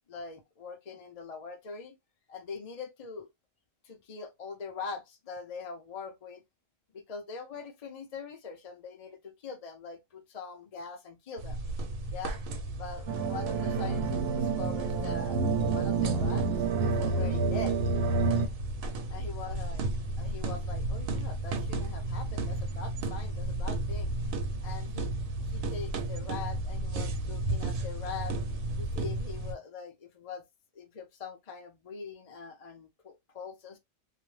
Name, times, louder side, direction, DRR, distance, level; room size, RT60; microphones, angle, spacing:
voice 1, 0.1-2.0 2.3-3.3 3.9-6.4 6.9-11.6 12.1-12.4 12.8-15.4 15.7-16.5 16.8-17.8 19.1-19.8 20.2-24.1 24.6-25.1 25.5-28.4 28.8-30.4 30.8-33.8, left 5 dB, 50° left, 0.4 m, -42 dB
sound 1, 11.4-29.5, right 2 dB, 90° right, 1.0 m, -34 dB
sound 2, 13.1-18.5, right 4 dB, 60° right, 0.8 m, -28 dB
2.4 x 2.1 x 3.0 m
omnidirectional pair, 1.4 m